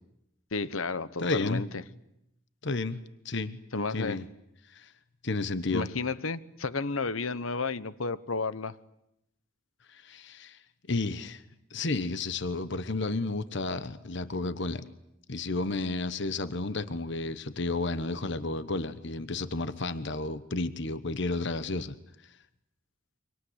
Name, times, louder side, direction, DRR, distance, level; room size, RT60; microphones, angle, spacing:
voice 1, 0.5-1.7 3.7-4.2 5.7-8.8, left 4 dB, 85° left, 15 dB, 1.2 m, -32 dB
voice 2, 1.2-1.6 2.6-3.6 3.9-4.3 4.7-4.9 5.2-5.9 9.9-10.6 10.9-11.4 11.7-14.9 15.3-22.0, left 2 dB, 60° left, 13 dB, 1.2 m, -32 dB
29.0 x 25.5 x 8.1 m, 0.81 s
head